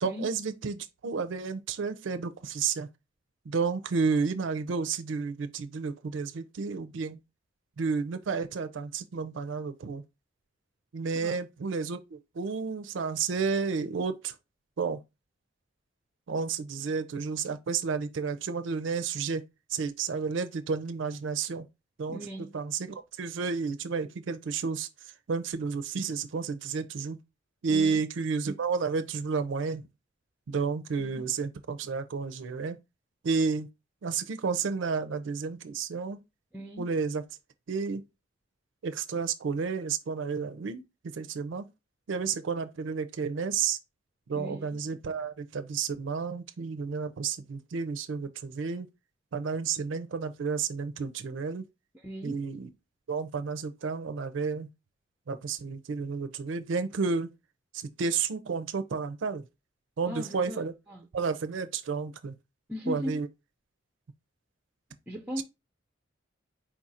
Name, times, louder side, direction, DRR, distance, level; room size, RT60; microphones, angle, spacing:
voice 1, 0.0-2.9 3.5-7.2 7.8-10.0 10.9-14.3 14.8-15.0 16.3-19.4 19.7-21.7 22.0-22.2 22.5-24.9 25.3-27.2 27.6-29.8 30.5-32.8 33.2-33.7 34.0-36.2 36.8-37.2 37.7-38.0 38.8-40.8 41.1-41.7 42.1-43.8 44.3-48.9 49.3-51.6 52.2-52.7 53.1-54.7 55.3-57.3 57.7-59.4 60.0-60.7 61.1-62.3 62.9-63.3 65.4-65.5, right 5 dB, 80° right, 0.4 m, -31 dB
voice 2, 22.1-22.6 27.7-28.0 31.0-31.3 36.5-36.9 44.3-44.8 51.9-52.5 60.1-61.1 62.7-63.2 65.1-65.4, equal, 5° right, 0.5 m, -38 dB
4.5 x 2.4 x 4.0 m
head